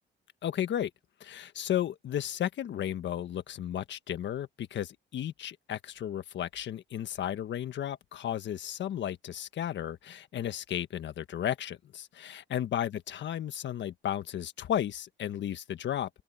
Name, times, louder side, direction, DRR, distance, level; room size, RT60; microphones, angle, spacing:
voice 1, 0.4-0.9 1.2-16.1, left 10 dB, 65° left, 1.4 m, -34 dB
open air
cardioid pair, 90°, 20 cm